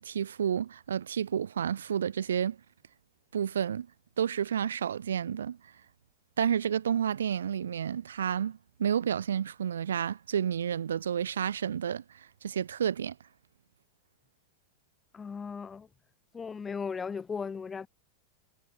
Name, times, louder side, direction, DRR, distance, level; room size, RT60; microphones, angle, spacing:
voice 1, 0.0-2.6 3.3-3.9 4.2-5.6 6.4-13.1, right 8 dB, 65° right, 2.3 m, -30 dB
voice 2, 15.1-15.9 16.3-17.9, left 5 dB, 15° left, 2.2 m, -36 dB
figure-of-eight pair, 90°, 0 cm